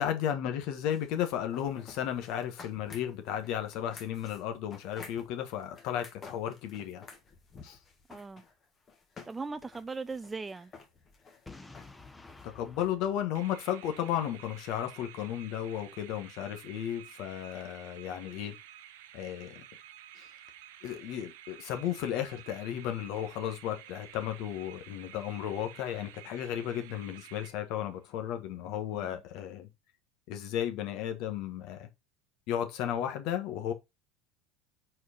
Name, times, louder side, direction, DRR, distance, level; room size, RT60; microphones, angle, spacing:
voice 1, 0.0-7.0 7.6-7.8 12.4-18.5 19.1-19.6 20.1-20.3 20.8-29.7 30.3-31.9 32.5-33.7, left 10 dB, 60° left, 1.4 m, -34 dB
sound 1, 0.9-12.9, left 4 dB, 35° left, 1.7 m, -52 dB
voice 2, 8.1-8.4 9.2-10.7 28.9-29.2, right 4 dB, 20° right, 0.3 m, -39 dB
Boom, 11.5-14.3, left 3 dB, 15° left, 1.0 m, -52 dB
sound 2, 13.3-28.0, right 11 dB, 75° right, 0.7 m, -52 dB
4.6 x 4.5 x 5.7 m
hypercardioid pair, 75°, 0 cm